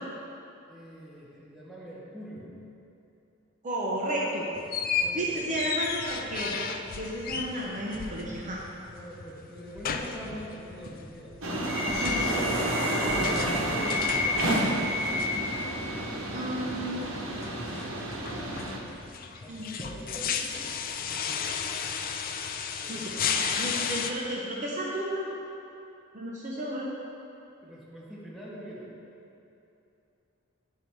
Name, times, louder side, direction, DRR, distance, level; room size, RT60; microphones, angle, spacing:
voice 1, 0.7-2.5 5.0-5.7 8.9-11.4 12.2-14.6 19.2-20.6 22.8-23.2 27.6-28.9, equal, ahead, -8 dB, 1.7 m, -43 dB
voice 2, 3.6-4.5 5.1-8.6 12.0-12.3 16.3-17.3 19.5-19.7 22.9-23.1 23.4-25.3 26.1-26.9, right 1 dB, 40° right, -4 dB, 0.9 m, -33 dB
sound 1, 4.6-24.1, left 6 dB, 45° left, 0.4 m, -35 dB
sound 2, 11.4-18.8, equal, 85° right, 1.1 m, -29 dB
10.0 x 5.3 x 4.6 m, 2.8 s
head